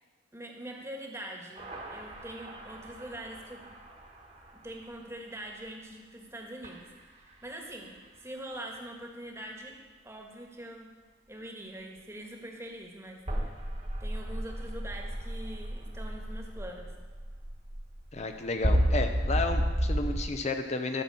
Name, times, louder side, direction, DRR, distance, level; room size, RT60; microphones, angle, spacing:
voice 1, 0.3-1.6 1.9-3.7 4.5-6.9 7.4-9.8 10.0-10.9 11.3-13.2 14.0-16.9, right 1 dB, 15° right, 1 dB, 1.5 m, -43 dB
sound 1, 1.6-4.1 6.6-6.7 13.3-20.2, equal, 40° right, 1.6 m, -32 dB
voice 2, 18.1-21.0, left 3 dB, 40° left, 6 dB, 0.7 m, -32 dB
13.0 x 6.1 x 6.9 m, 1.4 s
head